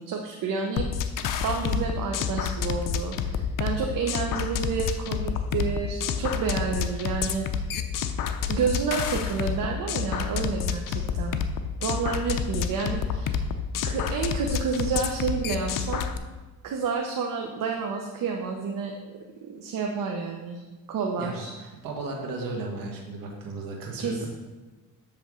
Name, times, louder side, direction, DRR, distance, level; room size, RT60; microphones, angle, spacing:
voice 1, 0.0-7.5 8.5-11.4 11.8-13.4 13.8-16.1 16.6-19.2 19.5-20.6 20.9-21.5 24.0-24.2, right 5 dB, 75° right, 1 dB, 0.9 m, -30 dB
sound 1, 0.8-16.2, left 7 dB, 70° left, 0.6 m, -29 dB
voice 2, 21.2-24.3, right 2 dB, 90° right, 0 dB, 1.7 m, -35 dB
7.6 x 3.4 x 6.2 m, 1.2 s
cardioid pair, 100°, 34 cm